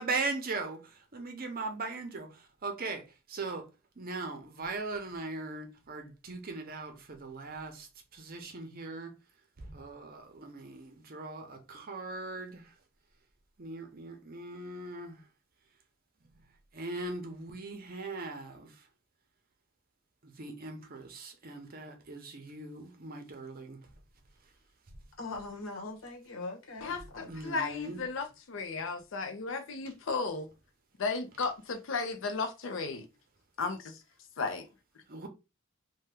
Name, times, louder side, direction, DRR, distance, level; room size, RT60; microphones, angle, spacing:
voice 1, 0.0-3.7 4.0-9.1 9.6-12.7 13.6-15.2 16.7-18.8 20.2-23.8 24.9-25.0 26.9-28.0 35.1-35.3, right 3 dB, 45° right, 0.7 m, -39 dB
voice 2, 25.2-27.3, left 3 dB, 85° left, 1.1 m, -41 dB
voice 3, 26.8-30.5 31.0-33.1 33.6-34.0 34.4-34.7, left 4 dB, 70° left, 0.5 m, -34 dB
2.8 x 2.2 x 3.3 m
head